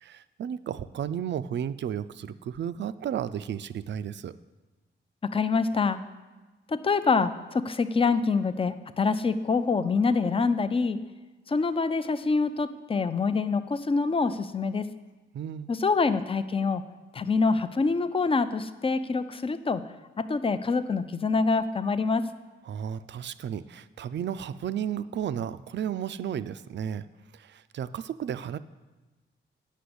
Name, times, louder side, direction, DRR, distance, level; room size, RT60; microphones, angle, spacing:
voice 1, 0.0-4.3 15.3-15.7 22.7-27.0 27.3-28.6, right 9 dB, 60° right, 14 dB, 0.4 m, -33 dB
voice 2, 5.3-6.0 6.7-11.0 11.5-14.9 15.7-16.8 17.1-19.8 20.2-22.3, left 4 dB, 25° left, 12 dB, 0.5 m, -25 dB
8.4 x 5.9 x 7.9 m, 1.2 s
wide cardioid pair, 115°, 20 cm